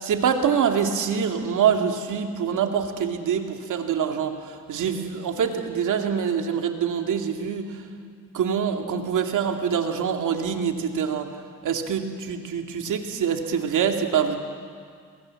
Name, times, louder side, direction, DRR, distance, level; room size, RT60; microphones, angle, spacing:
voice 1, 0.0-7.8 8.3-11.3 11.6-14.4, right 7 dB, 70° right, 4 dB, 2.4 m, -25 dB
22.5 x 22.0 x 7.7 m, 2.1 s
cardioid pair, 75°, 32 cm